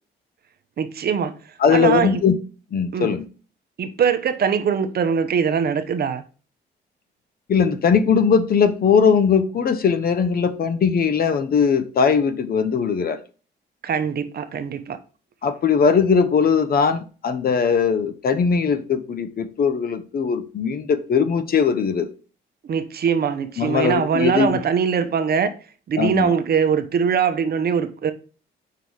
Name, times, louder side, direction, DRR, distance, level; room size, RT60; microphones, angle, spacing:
voice 1, 0.8-1.3 1.7-2.2 2.9-3.1 3.8-6.2 13.8-15.0 22.6-25.5 25.9-28.1, right 7 dB, 50° right, 0.8 m, -22 dB
voice 2, 1.6-2.3 2.7-3.2 7.5-13.2 15.4-22.1 23.6-24.6 26.0-26.4, left 6 dB, 50° left, 0.8 m, -20 dB
5.7 x 3.9 x 4.7 m
cardioid pair, 90°, 20 cm